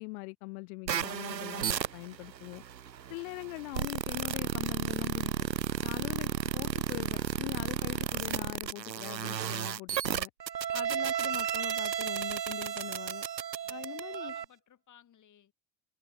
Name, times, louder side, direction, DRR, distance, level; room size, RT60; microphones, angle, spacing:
voice 1, 0.0-2.6 3.1-5.3 5.8-10.3 10.7-13.2 13.7-14.3, left 29 dB, 60° left, 1.5 m, -42 dB
sound 1, 0.9-14.5, right 9 dB, 90° right, 0.7 m, -33 dB
voice 2, 13.6-15.5, left 10 dB, 35° left, 7.2 m, -60 dB
figure-of-eight pair, 70°, 49 cm